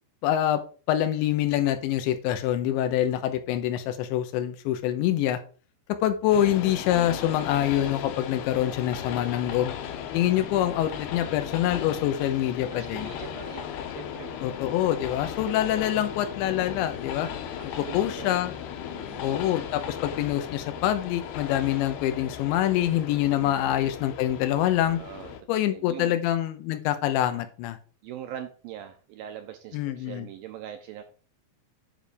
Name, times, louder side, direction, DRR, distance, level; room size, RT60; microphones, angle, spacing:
voice 1, 0.2-0.6 0.9-5.4 6.0-9.7 10.1-13.1 14.4-17.3 17.8-18.5 19.2-25.0 25.5-27.8 29.7-30.3, left 12 dB, 90° left, 9 dB, 3.3 m, -25 dB
Train, 6.3-25.4, left 8 dB, 75° left, 2.8 m, -37 dB
voice 2, 12.7-13.7 14.0-14.4 15.7-15.8 17.6-18.4 18.9-19.3 23.4-23.7 25.0-26.1 28.0-31.0, right 10 dB, 85° right, 6 dB, 2.0 m, -42 dB
9.7 x 3.5 x 6.8 m, 0.38 s
omnidirectional pair, 5.1 m